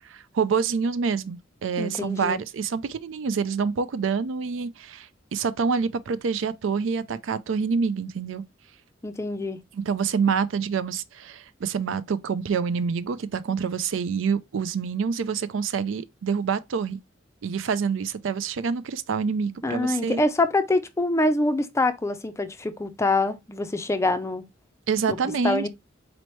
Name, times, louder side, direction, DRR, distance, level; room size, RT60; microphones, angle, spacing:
voice 1, 0.1-8.4 9.7-17.0 17.4-20.2 24.9-25.7, right 5 dB, 70° right, 0.4 m, -27 dB
voice 2, 1.8-2.4 9.0-9.6 19.6-24.4 25.1-25.7, left 2 dB, 15° left, 0.4 m, -25 dB
4.2 x 3.0 x 3.1 m
head